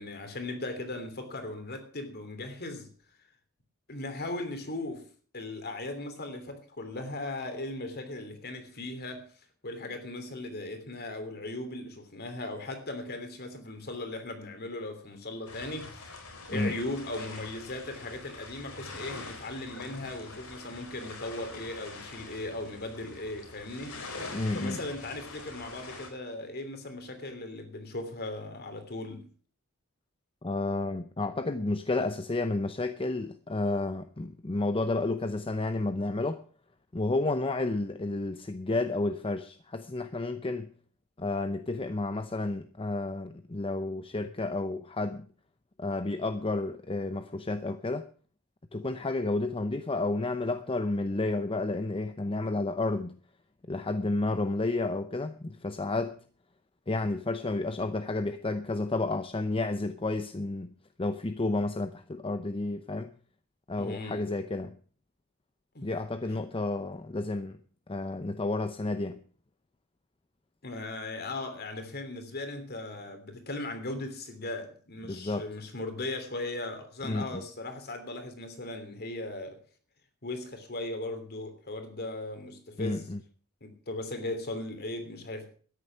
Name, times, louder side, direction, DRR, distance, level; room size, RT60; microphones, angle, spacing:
voice 1, 0.0-2.9 3.9-5.1 5.3-9.3 9.6-16.1 16.5-24.0 24.5-29.3 63.8-64.3 65.7-65.9 66.3-66.4 70.6-79.6 80.2-83.1 83.6-85.5, left 2 dB, 50° left, 3.1 m, -38 dB
sound 1, 15.5-26.1, left 3 dB, 75° left, 4.5 m, -44 dB
voice 2, 24.3-24.8 30.4-36.4 36.9-40.7 41.2-45.3 45.8-48.1 48.7-53.2 53.7-56.2 56.9-63.1 63.7-64.8 65.8-67.6 67.9-69.2 75.0-75.5 77.0-77.4 82.8-83.2, left 2 dB, 25° left, 0.7 m, -31 dB
13.5 x 10.0 x 6.2 m
head